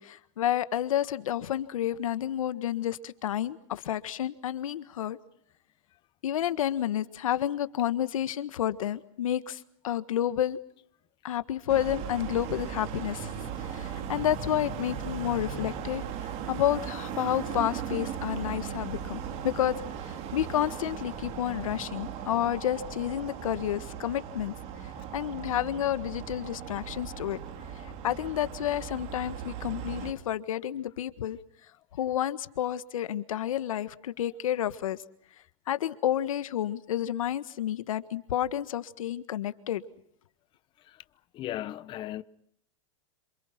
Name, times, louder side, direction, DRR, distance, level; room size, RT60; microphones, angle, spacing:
voice 1, 0.0-5.2 6.2-10.6 11.2-13.3 13.6-16.0 16.5-19.8 20.0-24.5 25.1-27.4 28.0-31.4 32.0-35.0 35.7-39.8, left 11 dB, 85° left, 1.6 m, -30 dB
sound 1, 11.7-30.1, right 8 dB, 40° right, 3.1 m, -37 dB
voice 2, 41.3-42.2, left 13 dB, 30° left, 0.9 m, -35 dB
27.5 x 26.0 x 6.0 m
supercardioid pair, 145°, 17 cm